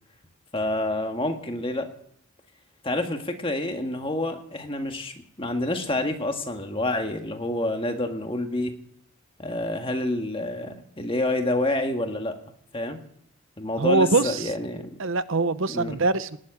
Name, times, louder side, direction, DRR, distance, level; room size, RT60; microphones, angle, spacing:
voice 1, 0.5-1.9 2.8-8.8 9.4-12.4 12.7-13.0 13.6-14.9 15.7-16.0, left 1 dB, 25° left, 5 dB, 1.7 m, -28 dB
voice 2, 13.8-14.5 15.0-16.4, right 3 dB, 60° right, 14 dB, 0.8 m, -23 dB
18.5 x 7.6 x 9.7 m, 0.69 s
head